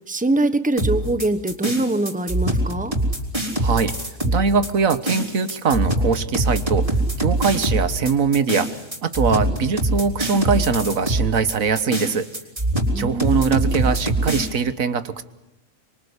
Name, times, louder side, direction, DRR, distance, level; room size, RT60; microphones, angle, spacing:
voice 1, 0.0-2.9 12.9-13.8, right 2 dB, 5° right, 10 dB, 1.2 m, -23 dB
sound 1, 0.8-14.5, right 1 dB, 25° right, 4.1 m, -23 dB
voice 2, 3.6-3.9 4.2-12.3 12.9-15.2, right 5 dB, 85° right, 13 dB, 1.7 m, -22 dB
26.0 x 23.5 x 8.2 m, 0.91 s
omnidirectional pair, 1.4 m